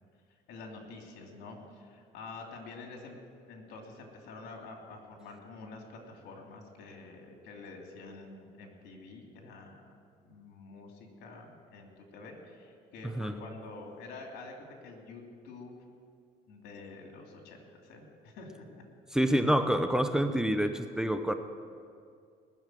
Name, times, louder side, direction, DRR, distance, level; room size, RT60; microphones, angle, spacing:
voice 1, 0.5-3.2 3.5-9.8 10.2-15.8 16.5-18.8, left 3 dB, 85° left, 1 dB, 3.1 m, -47 dB
voice 2, 19.1-21.3, equal, 5° right, 8 dB, 0.8 m, -27 dB
20.5 x 7.3 x 9.1 m, 2.2 s
cardioid pair, 110°, 17 cm